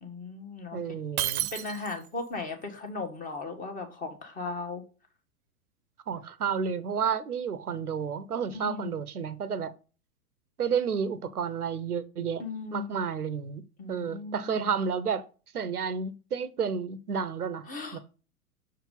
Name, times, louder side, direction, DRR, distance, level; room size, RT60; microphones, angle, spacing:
voice 1, 0.0-0.8 1.4-4.8 8.5-9.0 12.4-12.9 13.8-14.7 17.7-18.0, left 3 dB, 20° left, 1.4 m, -37 dB
voice 2, 0.7-1.5 6.1-9.7 10.6-12.4 12.7-13.6 13.9-15.2 15.5-17.6 17.9-18.0, right 6 dB, 85° right, 0.8 m, -31 dB
Shatter, 1.2-2.2, right 14 dB, 35° right, 0.8 m, -31 dB
6.5 x 4.7 x 3.8 m
figure-of-eight pair, 105°, 44 cm